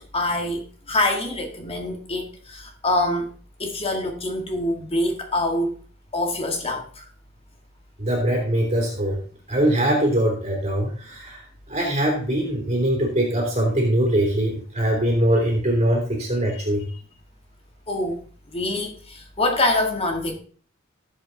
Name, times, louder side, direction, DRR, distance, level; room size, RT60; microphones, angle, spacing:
voice 1, 0.0-3.3 3.6-5.8 6.1-7.1 17.9-18.2 18.5-20.4, left 1 dB, 30° left, 3 dB, 1.9 m, -25 dB
voice 2, 8.0-9.2 9.5-16.9, right 1 dB, 30° right, -1 dB, 3.0 m, -22 dB
16.5 x 7.5 x 4.0 m, 0.43 s
head